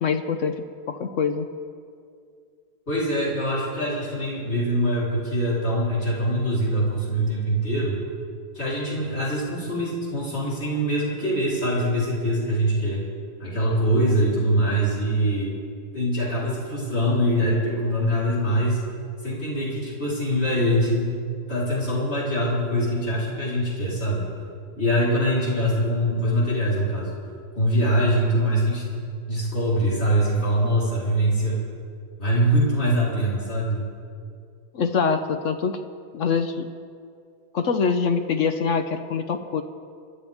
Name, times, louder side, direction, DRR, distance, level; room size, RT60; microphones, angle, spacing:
voice 1, 0.0-0.5 0.9-1.5 34.7-35.8 36.1-36.7 37.5-39.6, left 5 dB, 60° left, 8 dB, 0.8 m, -24 dB
voice 2, 2.9-8.0 8.5-13.0 13.4-15.5 15.9-18.8 19.2-21.1 21.5-24.3 24.8-27.2 27.6-29.0 29.3-31.6 32.2-33.9, equal, 35° left, -6 dB, 4.1 m, -23 dB
28.0 x 12.5 x 3.5 m, 2.3 s
omnidirectional pair, 1.9 m